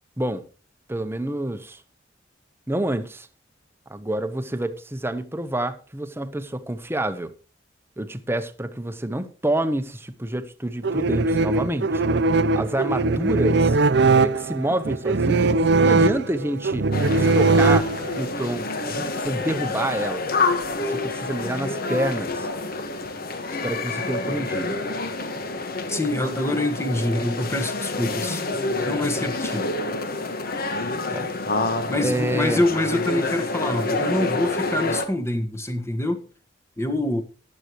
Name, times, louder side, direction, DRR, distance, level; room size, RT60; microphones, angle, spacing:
voice 1, 0.9-1.8 2.7-3.3 3.9-7.3 8.0-12.0 12.5-13.8 14.1-16.9 17.1-17.9 18.2-20.3 20.8-22.5 23.6-24.8 31.1-31.3 32.0-32.6, right 1 dB, 15° right, 1.0 m, -28 dB
sound 1, 10.8-18.3, right 3 dB, 60° right, 0.6 m, -20 dB
sound 2, 16.9-35.1, left 3 dB, 50° left, 1.5 m, -28 dB
voice 2, 25.9-28.4 28.8-29.7 31.9-36.3 36.8-37.2, left 1 dB, 15° left, 1.4 m, -25 dB
15.0 x 11.0 x 3.1 m
head